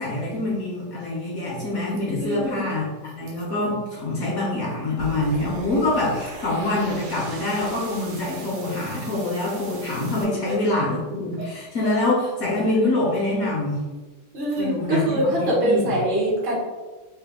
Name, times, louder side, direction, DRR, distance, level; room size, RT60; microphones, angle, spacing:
voice 1, 0.0-13.8 14.6-16.0, left 2 dB, 60° left, -4 dB, 0.9 m, -25 dB
voice 2, 2.2-2.6 10.4-10.5 14.3-16.6, right 1 dB, 40° right, -4 dB, 0.9 m, -23 dB
sound 1, 5.0-10.2, right 3 dB, 85° right, 1.7 m, -38 dB
3.4 x 2.8 x 3.6 m, 1.3 s
omnidirectional pair, 2.3 m